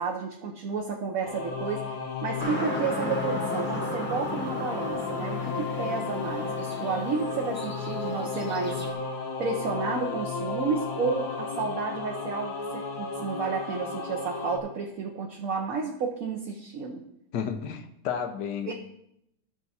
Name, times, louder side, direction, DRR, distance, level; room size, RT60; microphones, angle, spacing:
voice 1, 0.0-1.8 2.2-8.8 9.4-17.0 18.7-18.8, right 4 dB, 60° right, 0 dB, 1.3 m, -31 dB
Singing / Musical instrument, 1.2-14.6, left 4 dB, 65° left, 1.5 m, -33 dB
sound 1, 2.4-8.9, left 1 dB, 5° left, 1.1 m, -36 dB
voice 2, 17.3-18.7, left 7 dB, 85° left, 8 dB, 1.5 m, -32 dB
13.5 x 5.8 x 4.2 m, 0.77 s
omnidirectional pair, 1.8 m